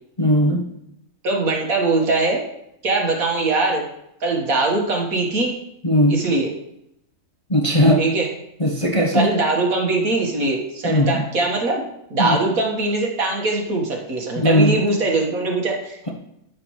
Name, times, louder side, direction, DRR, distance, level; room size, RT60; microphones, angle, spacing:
voice 1, 0.2-0.6 5.8-6.2 7.5-8.0 8.6-9.3 10.8-11.2 12.2-12.4 14.3-14.8, equal, 25° left, -1 dB, 0.8 m, -18 dB
voice 2, 1.2-2.4 2.8-3.8 4.2-5.5 6.1-6.5 8.0-8.3 9.1-11.8 12.1-16.1, right 2 dB, 65° right, 0 dB, 1.9 m, -21 dB
12.5 x 5.6 x 3.1 m, 0.80 s
omnidirectional pair, 1.6 m